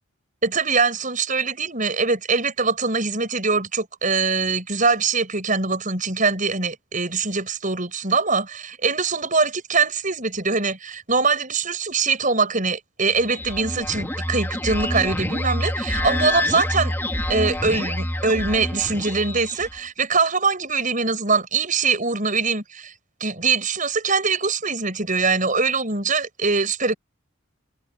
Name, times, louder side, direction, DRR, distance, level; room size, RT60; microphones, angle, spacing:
voice 1, 0.4-16.9 17.3-22.9 23.2-27.0, right 4 dB, 40° right, 7.1 m, -23 dB
sound 1, 13.1-19.8, left 1 dB, 10° left, 2.9 m, -27 dB
head